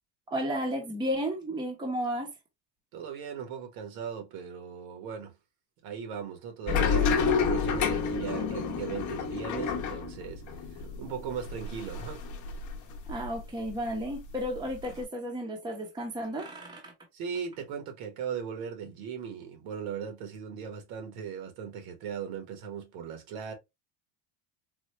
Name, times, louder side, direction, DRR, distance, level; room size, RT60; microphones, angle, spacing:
voice 1, 0.3-2.3 13.1-16.9, equal, 10° right, 0.7 m, -33 dB
voice 2, 2.9-5.3 5.8-10.4 11.0-12.2 17.1-23.5, right 7 dB, 70° right, 1.4 m, -38 dB
sound 1, 6.7-13.4 13.7-15.0, left 5 dB, 35° left, 0.8 m, -30 dB
4.2 x 2.3 x 3.0 m
cardioid pair, 155°, 50 cm